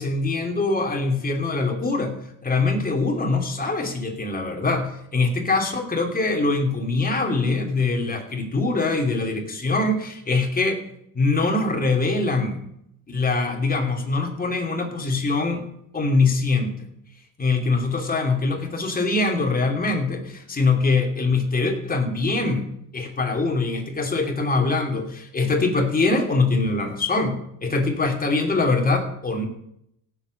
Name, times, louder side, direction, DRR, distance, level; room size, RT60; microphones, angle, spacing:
voice 1, 0.0-2.2 2.4-10.8 11.1-12.6 13.1-15.6 15.9-16.9 17.4-22.7 22.9-29.5, left 3 dB, 25° left, 3 dB, 3.1 m, -23 dB
16.5 x 7.6 x 6.6 m, 0.76 s
supercardioid pair, 90°, 37 cm